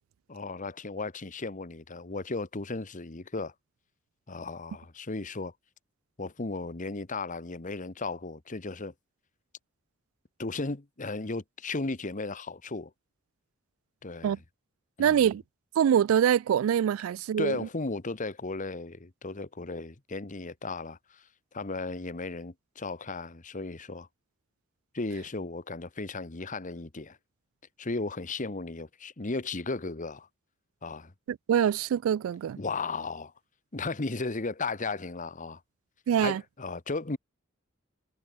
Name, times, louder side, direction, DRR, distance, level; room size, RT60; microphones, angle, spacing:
voice 1, 0.3-3.5 4.3-5.5 6.2-8.9 10.4-12.9 14.0-14.4 15.0-15.3 17.4-21.2 21.5-24.1 24.9-27.2 27.8-30.3 30.8-31.1 32.6-33.3 33.7-35.6 36.2-37.2, left 3 dB, 40° left, 1.2 m, -35 dB
voice 2, 15.0-15.4 15.8-17.7 31.3-32.6 36.1-36.4, right 9 dB, 75° right, 0.3 m, -24 dB
head